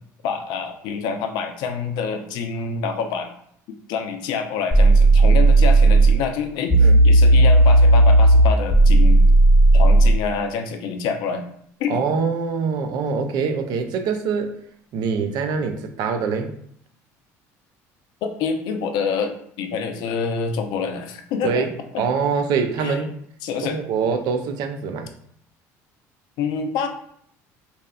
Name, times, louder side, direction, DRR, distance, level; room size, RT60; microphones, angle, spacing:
voice 1, 0.2-3.3 3.9-9.2 9.7-11.4 11.8-12.0 18.2-21.7 21.9-22.0 22.8-23.0 23.4-23.8 26.4-26.9, left 5 dB, 70° left, 7 dB, 0.4 m, -27 dB
sound 1, 4.7-6.2 6.7-10.2, right 2 dB, 20° left, 0.7 m, -13 dB
voice 2, 11.9-14.5 14.9-16.5 21.4-21.7 22.0-23.2 23.6-25.1, right 5 dB, 65° right, 6 dB, 0.4 m, -24 dB
2.7 x 2.2 x 2.3 m, 0.67 s
supercardioid pair, 85°, 8 cm